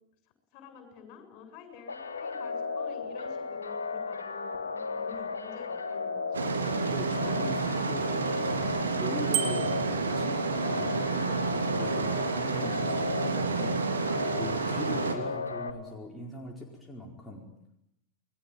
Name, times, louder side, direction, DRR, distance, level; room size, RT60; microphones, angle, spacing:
voice 1, 0.5-6.6, left 6 dB, 45° left, 8 dB, 7.7 m, -49 dB
sound 1, 1.9-15.7, left 4 dB, 75° left, 2.4 m, -35 dB
sound 2, 6.3-15.1, right 5 dB, 70° right, 3.2 m, -30 dB
voice 2, 6.8-13.8 14.4-17.4, left 1 dB, 5° left, -1 dB, 4.7 m, -41 dB
Bicycle bell, 9.3-9.9, right 10 dB, 45° right, 3.3 m, -31 dB
29.0 x 22.0 x 9.1 m, 0.81 s
figure-of-eight pair, 90°, 0 cm